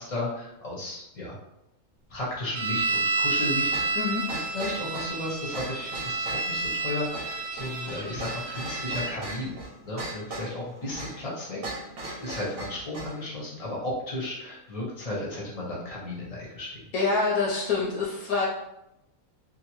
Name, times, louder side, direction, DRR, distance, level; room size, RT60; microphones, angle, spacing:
voice 1, 0.0-1.4 2.1-4.1 4.5-9.6 9.8-11.6 12.2-16.8, left 1 dB, 35° left, -5 dB, 0.6 m, -34 dB
sound 1, 2.5-9.1, right 3 dB, 80° right, 0.5 m, -30 dB
sound 2, 3.7-13.2, right 2 dB, 50° right, 0.8 m, -39 dB
voice 2, 16.9-18.5, left 4 dB, 75° left, -4 dB, 1.0 m, -26 dB
2.7 x 2.3 x 2.9 m, 0.86 s
omnidirectional pair, 1.6 m